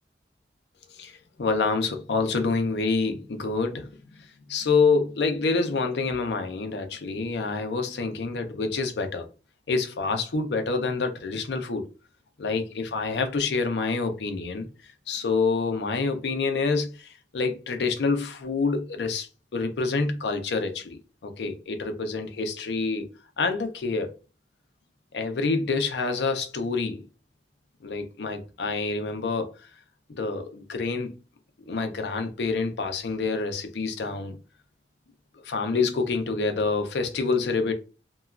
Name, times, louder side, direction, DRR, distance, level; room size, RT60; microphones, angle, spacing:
voice 1, 1.4-3.9 4.5-9.3 9.7-11.9 12.4-14.7 15.1-23.1 23.4-24.2 25.1-27.0 27.8-29.5 30.1-31.2 31.7-34.4 35.5-37.7, left 4 dB, 70° left, 0.5 m, -27 dB
2.9 x 2.2 x 2.4 m
head